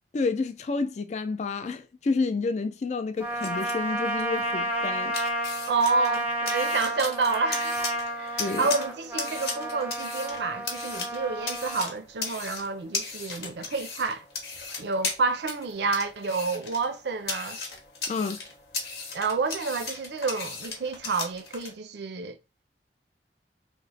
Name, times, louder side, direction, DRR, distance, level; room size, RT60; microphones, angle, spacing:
voice 1, 0.1-5.1 8.4-8.7 18.1-18.4, left 4 dB, 40° left, 0.3 m, -29 dB
sound 1, 3.2-21.7, left 4 dB, 65° left, 0.9 m, -37 dB
Trumpet, 3.2-11.9, right 1 dB, 10° right, 0.7 m, -31 dB
voice 2, 5.7-14.2 14.8-17.6 19.1-22.4, right 4 dB, 70° right, 0.5 m, -29 dB
3.0 x 2.1 x 4.0 m
head